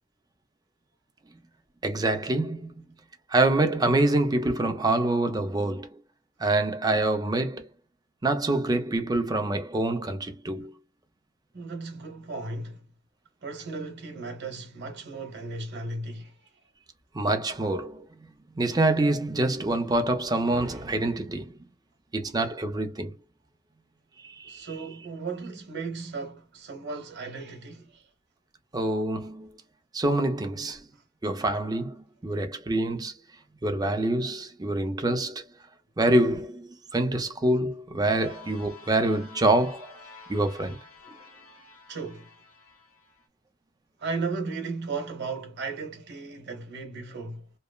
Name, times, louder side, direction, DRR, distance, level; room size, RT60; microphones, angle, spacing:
voice 1, 1.8-2.7 3.3-6.0 6.4-7.7 8.2-10.7 17.1-18.1 18.5-21.6 22.1-23.1 24.2-24.7 28.7-29.5 29.9-30.8 31.2-33.1 33.6-35.4 36.0-39.9 40.3-40.8, right 2 dB, 20° right, 0.5 m, -26 dB
voice 2, 11.5-12.8 13.4-16.5 20.7-20.8 24.4-28.1 30.9-31.0 41.9-42.3 44.0-47.5, right 3 dB, 55° right, 1.0 m, -36 dB
sound 1, 38.0-43.3, left 3 dB, 85° left, 0.9 m, -50 dB
3.0 x 2.0 x 2.2 m
head